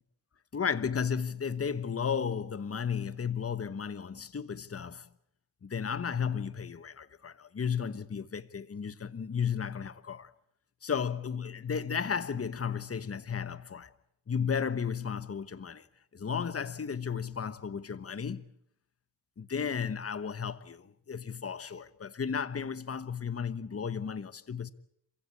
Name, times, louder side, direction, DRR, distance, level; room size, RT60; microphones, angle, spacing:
voice 1, 0.5-5.1 5.6-10.3 10.8-13.9 14.3-15.9 16.1-18.5 19.4-24.7, left 6 dB, 30° left, 1.2 m, -34 dB
27.5 x 16.0 x 8.7 m
cardioid pair, 85°, 44 cm